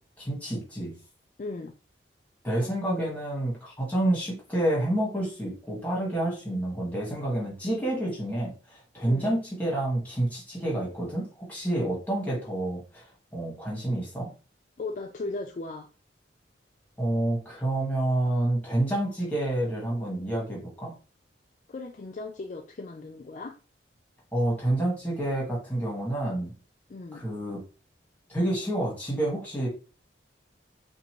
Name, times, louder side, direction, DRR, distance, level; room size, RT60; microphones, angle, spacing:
voice 1, 0.2-0.9 2.4-13.1 13.3-14.3 17.0-20.9 24.3-26.5 27.1-27.6 28.3-29.7, right 1 dB, 10° left, -3 dB, 1.8 m, -28 dB
voice 2, 1.4-1.7 9.1-9.4 14.8-15.9 21.7-23.6 26.9-27.3, left 3 dB, 40° left, 4 dB, 0.4 m, -37 dB
5.1 x 2.6 x 3.1 m, 0.34 s
head